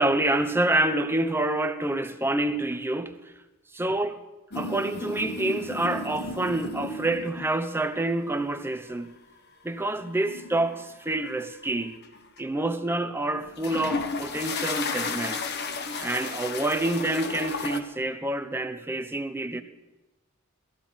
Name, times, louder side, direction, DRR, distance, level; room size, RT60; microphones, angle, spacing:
voice 1, 0.0-3.3 3.8-4.1 4.5-9.1 9.6-12.0 12.4-15.4 16.0-19.6, right 2 dB, 10° right, 0.8 m, -27 dB
sound 1, 4.5-7.7 8.1-8.5 10.0-11.6 12.0-12.4 13.4-17.8, left 4 dB, 50° left, 1.2 m, -34 dB
17.5 x 13.5 x 5.7 m
head